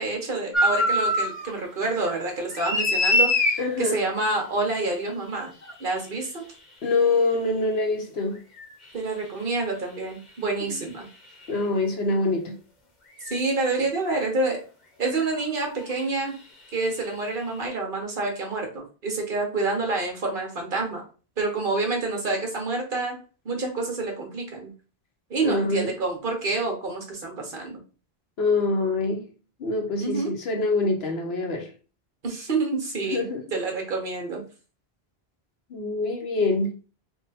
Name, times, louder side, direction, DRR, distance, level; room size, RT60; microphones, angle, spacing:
voice 1, 0.0-5.5 5.8-6.4 8.9-11.1 13.3-14.6 15.0-16.3 16.7-21.0 21.4-23.2 23.4-24.7 25.3-27.8 30.0-30.3 32.2-34.4, right 3 dB, 55° right, 1.3 m, -28 dB
sound 1, 0.5-1.5 1.9-3.6 5.6-5.7 8.6-8.7 11.4-11.5 13.2-13.4 15.2-15.4 15.7-15.9, left 1 dB, 45° left, 1.0 m, -23 dB
voice 2, 3.6-4.0 6.8-8.4 10.6-10.8 11.5-12.6 25.4-25.9 28.4-29.2 29.6-31.7 33.1-33.4 35.7-36.7, left 3 dB, 75° left, 1.1 m, -25 dB
3.6 x 2.4 x 4.1 m
omnidirectional pair, 1.1 m